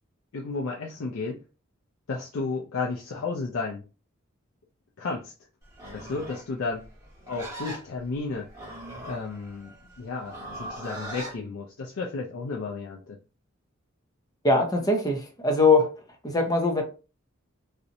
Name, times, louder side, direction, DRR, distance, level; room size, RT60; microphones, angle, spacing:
voice 1, 0.3-1.4 2.1-3.8 5.0-5.3 5.9-6.9 7.3-8.5 9.0-13.2, left 4 dB, 90° left, 0.4 m, -33 dB
Livestock farm animals working animals, 5.7-11.4, right 1 dB, 15° right, 1.0 m, -40 dB
voice 2, 14.4-15.9 16.2-16.8, left 3 dB, 20° left, 0.6 m, -22 dB
2.5 x 2.0 x 2.7 m
head